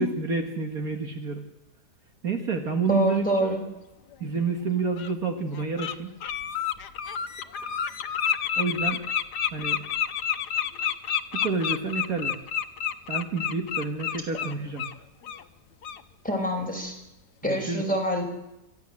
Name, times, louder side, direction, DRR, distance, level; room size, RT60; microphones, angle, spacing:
voice 1, 0.0-1.4 2.2-3.3 4.2-6.1 8.6-9.0 9.5-9.8 11.3-12.3 13.1-14.9 17.4-17.8, right 4 dB, 60° right, 4 dB, 2.3 m, -29 dB
voice 2, 2.9-3.6 16.2-16.9 17.4-18.3, equal, 5° left, 1 dB, 5.1 m, -26 dB
Bird, 4.1-4.2 5.0-5.1 5.5-5.9 6.2-14.9 15.2-15.4 15.8-16.0, left 8 dB, 75° left, 1.5 m, -29 dB
27.5 x 13.5 x 7.8 m, 0.93 s
omnidirectional pair, 1.8 m